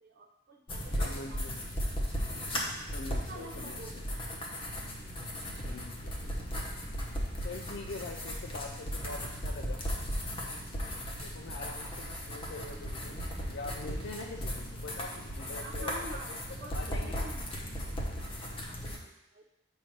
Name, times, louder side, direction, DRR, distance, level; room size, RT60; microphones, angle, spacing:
voice 1, 0.0-1.4 3.1-3.9 4.2-4.4 15.6-16.3 16.6-16.7 17.0-17.4 18.5-19.5, right 1 dB, 45° right, 2 dB, 0.5 m, -47 dB
sound 1, 0.7-19.0, equal, 25° left, 0.8 m, -36 dB
voice 2, 1.0-1.6 2.9-4.0 5.6-6.2 7.4-9.8 10.3-10.6 11.2-13.2 13.5-16.4 16.7-17.3, left 3 dB, 55° left, 1 dB, 0.4 m, -44 dB
7.8 x 2.6 x 5.2 m, 0.89 s
head